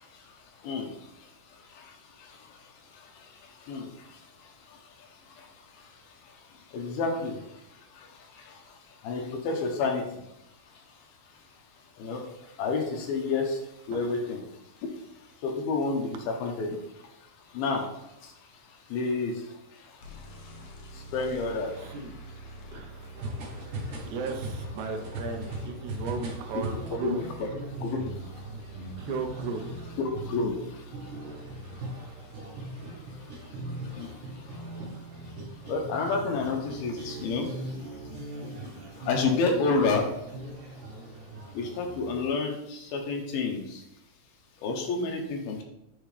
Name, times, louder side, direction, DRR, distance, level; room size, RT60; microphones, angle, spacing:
voice 1, 6.7-7.4 8.5-8.6 9.0-10.0 12.0-12.2 12.6-13.6 13.9-14.4 15.4-16.7 17.5-17.8 18.9-19.3 21.1-21.7 26.9-27.5 27.8-28.0 30.0-30.5 34.0-34.1 35.7-37.5 39.1-40.1 41.5-43.8 44.6-45.6, left 4 dB, 90° left, 2 dB, 2.9 m, -29 dB
sound 1, 20.0-33.3, right 2 dB, 65° left, 2.0 m, -46 dB
voice 2, 21.8-22.1 22.7-23.1 24.0-27.3 29.0-29.9, right 4 dB, 90° right, 3 dB, 1.7 m, -35 dB
sound 2, 23.2-42.3, right 1 dB, 65° right, 2.6 m, -39 dB
9.0 x 4.2 x 3.2 m, 0.83 s
omnidirectional pair, 4.2 m